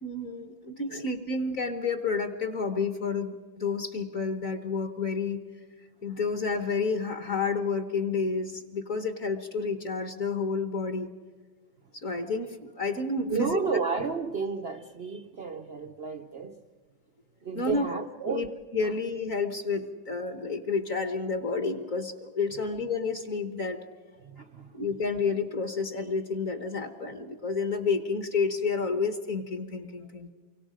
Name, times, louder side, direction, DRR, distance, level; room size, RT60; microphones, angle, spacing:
voice 1, 0.0-5.4 6.0-11.1 12.0-13.6 17.5-17.9 18.3-18.5 18.7-23.8 24.7-30.3, left 4 dB, 45° left, 1.4 m, -30 dB
voice 2, 13.3-16.6 17.4-18.5 24.2-24.7, right 5 dB, 80° right, 0.5 m, -32 dB
29.0 x 24.0 x 5.1 m
omnidirectional pair, 2.2 m